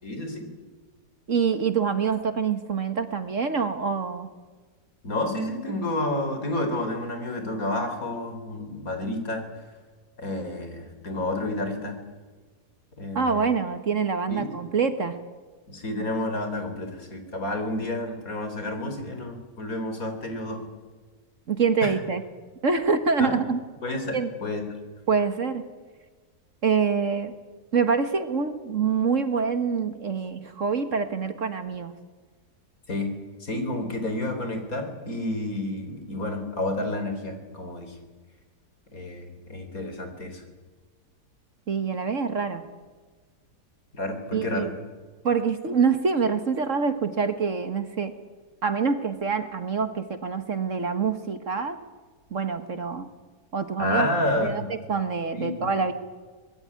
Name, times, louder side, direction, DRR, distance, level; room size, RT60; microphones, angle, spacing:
voice 1, 0.0-0.5 5.0-9.5 10.2-12.0 13.0-13.5 14.3-14.5 15.7-20.6 21.8-21.9 23.2-23.4 23.8-24.6 32.9-33.1 33.4-38.0 38.9-40.4 43.9-44.7 53.8-54.7 55.4-55.7, left 1 dB, 55° left, 6 dB, 4.3 m, -30 dB
voice 2, 1.3-4.3 13.1-15.2 21.5-22.2 22.6-23.6 24.1-24.3 25.1-25.6 26.6-27.3 27.7-31.9 41.7-42.6 44.3-44.7 45.2-48.1 48.6-51.8 52.3-53.1 53.5-54.1 54.4-55.9, right 5 dB, 50° right, 10 dB, 1.8 m, -25 dB
24.0 x 20.5 x 9.7 m, 1.4 s
omnidirectional pair, 1.8 m